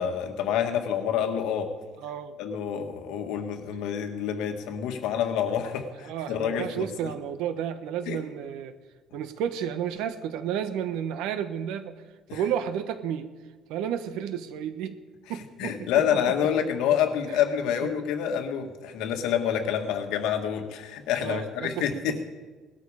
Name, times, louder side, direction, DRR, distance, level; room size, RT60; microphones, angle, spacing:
voice 1, 0.0-1.7 2.4-7.1 8.1-8.2 12.3-12.4 15.6-22.2, left 8 dB, 75° left, 5 dB, 1.8 m, -27 dB
voice 2, 2.0-2.4 5.8-8.8 9.1-12.0 12.3-13.3 13.7-15.0 15.3-16.3 17.3-17.4 21.2-22.2, right 9 dB, 85° right, 10 dB, 1.2 m, -32 dB
19.0 x 12.5 x 5.0 m, 1.3 s
cardioid pair, 170°, 0 cm